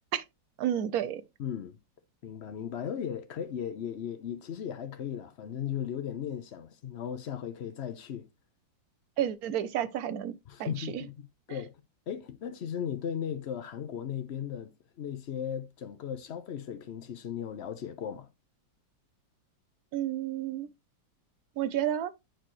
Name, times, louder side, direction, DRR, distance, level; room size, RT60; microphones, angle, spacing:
voice 1, 0.6-1.2 9.2-10.3 10.6-11.0 11.5-11.6 19.9-20.7 21.6-22.1, right 11 dB, 65° right, 1.0 m, -31 dB
voice 2, 1.4-1.8 2.2-8.3 10.5-11.7 12.1-18.3, left 8 dB, 70° left, 0.6 m, -37 dB
9.0 x 4.5 x 3.0 m
omnidirectional pair, 2.0 m